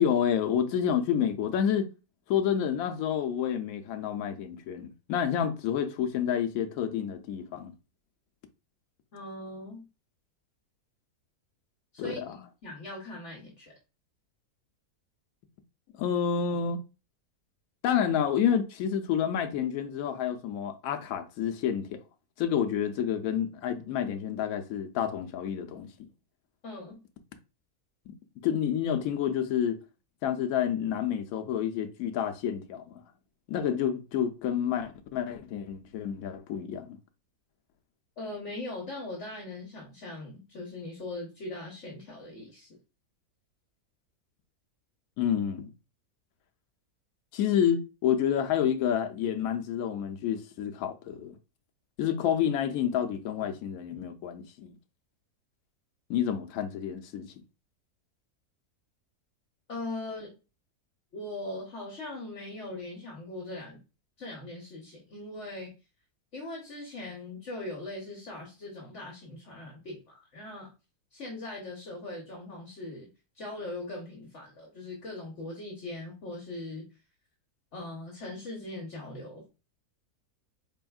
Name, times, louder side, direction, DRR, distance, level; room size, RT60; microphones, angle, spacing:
voice 1, 0.0-1.9 2.3-7.7 12.0-12.4 16.0-16.8 17.8-22.0 22.4-25.9 28.4-29.8 30.2-32.8 33.5-36.9 45.2-45.7 47.3-51.3 52.0-54.7 56.1-57.3, left 8 dB, 70° left, 1.0 m, -29 dB
voice 2, 9.1-9.9 11.9-13.7 26.6-27.0 38.2-42.7 59.7-60.3 61.1-63.8 64.2-65.7 66.3-70.7 71.1-73.1 73.3-76.9 77.7-79.5, left 2 dB, 55° left, 1.2 m, -40 dB
4.3 x 3.4 x 2.3 m
omnidirectional pair, 1.6 m